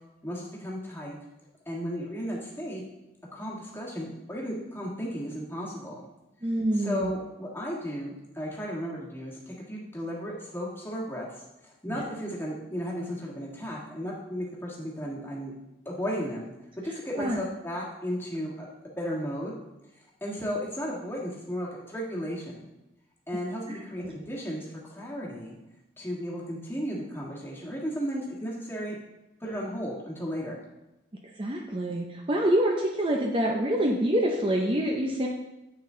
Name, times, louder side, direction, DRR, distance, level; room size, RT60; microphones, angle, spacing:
voice 1, 0.2-1.2 1.7-2.8 3.3-6.0 6.7-11.3 11.6-15.5 15.8-16.5 16.8-18.7 19.0-19.5 20.2-22.7 23.3-25.5 26.0-29.0 29.4-30.6, equal, 10° left, -4 dB, 1.5 m, -34 dB
voice 2, 6.4-7.1 11.9-12.0 17.2-17.4 23.7-24.1 31.4-35.3, right 1 dB, 25° right, 0 dB, 0.6 m, -26 dB
8.5 x 5.9 x 3.8 m, 0.95 s
head